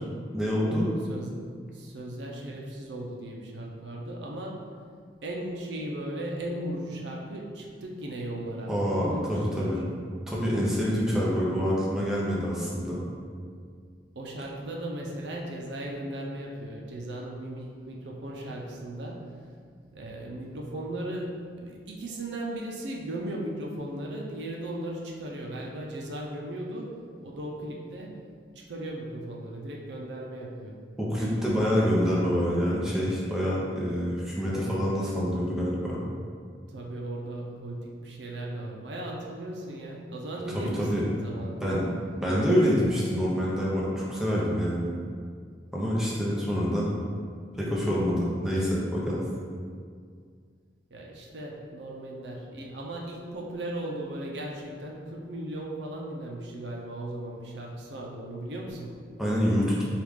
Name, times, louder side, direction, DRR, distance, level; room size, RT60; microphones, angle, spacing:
voice 1, 0.3-0.9 8.7-9.8 10.3-13.0 31.0-36.0 40.8-41.0 41.6-41.9 42.2-44.9 45.7-46.9 47.6-49.2 59.2-59.8, equal, 5° right, -7 dB, 0.7 m, -26 dB
voice 2, 1.1-4.7 5.2-9.8 14.2-19.3 19.9-28.2 28.6-30.8 36.7-41.8 50.9-59.0, right 1 dB, 75° right, -1 dB, 0.5 m, -37 dB
4.7 x 2.4 x 3.5 m, 2.1 s
head